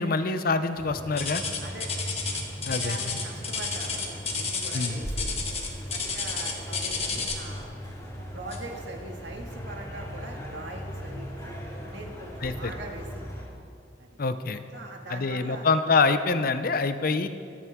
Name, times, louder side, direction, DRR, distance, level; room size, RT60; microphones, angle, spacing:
voice 1, 0.0-1.4 2.6-3.0 4.7-5.0 12.4-12.7 14.2-14.6 15.1-17.3, left 4 dB, 55° left, 10 dB, 0.6 m, -25 dB
sound 1, 0.7-13.4, equal, 20° left, 3.0 m, -38 dB
sound 2, 1.2-7.5 8.5-8.8 9.3-9.4 10.1-10.2, left 5 dB, 35° left, 1.5 m, -31 dB
voice 2, 1.6-2.2 2.5-5.4 5.9-7.8 8.3-11.5 11.9-13.2 14.0-14.1 14.7-15.7, right 2 dB, 75° right, 0 dB, 2.0 m, -42 dB
24.5 x 8.8 x 3.7 m, 2.3 s
head